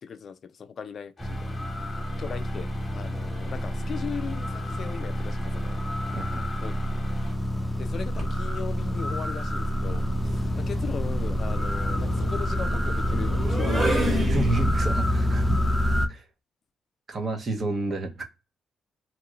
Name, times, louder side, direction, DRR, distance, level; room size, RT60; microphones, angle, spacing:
voice 1, 0.0-1.6 2.2-5.8 6.6-6.8 7.8-14.1, left 6 dB, 50° left, 0.4 m, -38 dB
sound 1, 1.2-7.3, left 2 dB, 20° left, 1.1 m, -45 dB
sound 2, 1.2-16.1, equal, 5° left, 0.6 m, -27 dB
voice 2, 6.1-6.5 14.3-15.6 16.1-16.2 17.1-18.2, right 2 dB, 40° right, 0.8 m, -29 dB
sound 3, 8.0-8.4 9.7-15.0, right 1 dB, 20° right, 1.3 m, -32 dB
2.9 x 2.4 x 2.9 m
cardioid pair, 90°, 0 cm